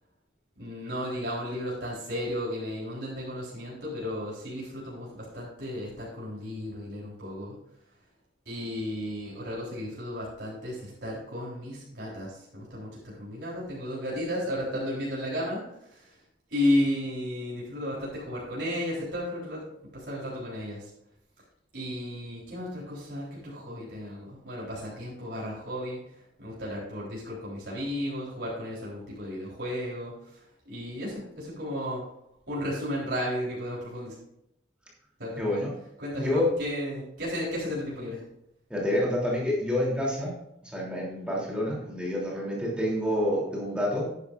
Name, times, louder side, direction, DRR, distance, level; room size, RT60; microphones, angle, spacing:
voice 1, 0.6-7.6 8.5-15.6 15.9-16.0 16.5-19.6 19.9-20.8 21.7-26.0 26.4-30.1 30.7-32.0 32.5-34.1 35.2-35.6 36.0-38.2, left 1 dB, 70° right, -6 dB, 3.9 m, -33 dB
voice 2, 35.4-35.7 36.2-36.5 38.7-40.3 40.6-44.1, left 1 dB, 5° right, -5 dB, 3.1 m, -28 dB
11.5 x 9.7 x 2.6 m, 0.79 s
head